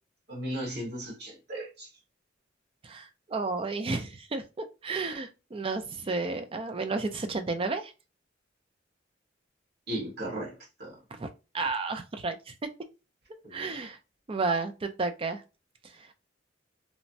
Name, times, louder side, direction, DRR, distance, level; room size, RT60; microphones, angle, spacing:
voice 1, 0.3-1.9 9.9-11.0 13.4-13.8, right 1 dB, 60° right, 1.4 m, -36 dB
voice 2, 2.8-7.9 11.1-11.3 11.5-12.5 13.5-14.0 14.3-15.4 16.0-16.1, right 3 dB, 30° right, 0.4 m, -32 dB
3.0 x 2.2 x 2.6 m
head